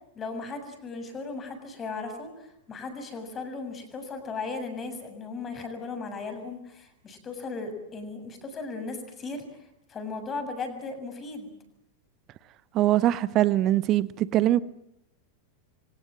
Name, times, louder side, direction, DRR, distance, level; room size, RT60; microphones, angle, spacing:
voice 1, 0.2-11.5, left 3 dB, 25° left, 7.2 m, -37 dB
voice 2, 12.7-14.6, right 13 dB, 35° right, 1.2 m, -22 dB
28.0 x 25.0 x 7.6 m
figure-of-eight pair, 90°, 0 cm